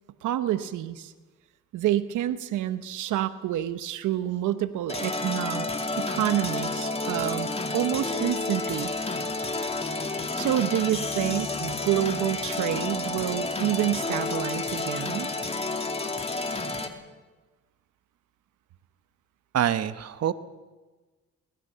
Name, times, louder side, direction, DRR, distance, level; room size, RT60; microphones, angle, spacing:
voice 1, 0.2-1.1 1.7-5.7 6.0-8.9 10.0-15.3, right 12 dB, 85° right, 12 dB, 1.1 m, -28 dB
sound 1, 4.9-16.9, left 3 dB, 20° left, 2.5 m, -30 dB
voice 2, 19.5-20.3, right 10 dB, 55° right, 12 dB, 1.1 m, -25 dB
24.0 x 20.0 x 6.9 m, 1.3 s
cardioid pair, 90°, 30 cm